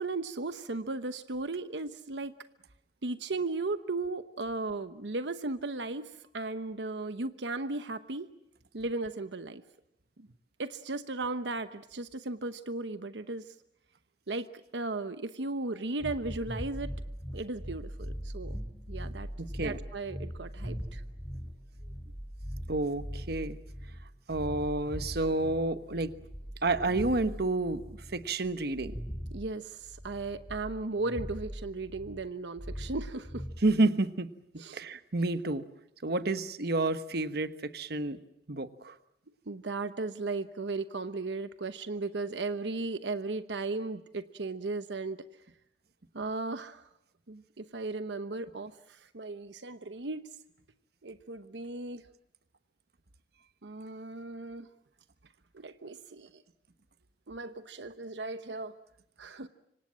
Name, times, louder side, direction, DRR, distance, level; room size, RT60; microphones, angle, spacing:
voice 1, 0.0-2.3 3.0-8.3 8.7-9.6 10.2-10.3 10.6-13.4 14.3-14.5 14.7-16.9 17.3-18.6 18.9-19.3 19.6-21.0 29.3-33.4 34.6-34.8 39.5-45.2 46.1-46.8 47.3-50.3 51.0-52.1 53.6-54.7 55.5-56.4 57.3-58.7 59.2-59.5, right 3 dB, 90° right, 11 dB, 1.0 m, -36 dB
sound 1, 16.0-32.3 32.6-33.6, equal, 10° left, 6.5 m, -41 dB
voice 2, 19.4-19.8 22.7-23.6 24.3-26.1 26.6-29.0 33.6-34.3 34.7-35.6 36.0-38.2 38.5-39.0, right 2 dB, 65° right, 11 dB, 1.2 m, -30 dB
26.0 x 25.5 x 7.5 m, 0.80 s
head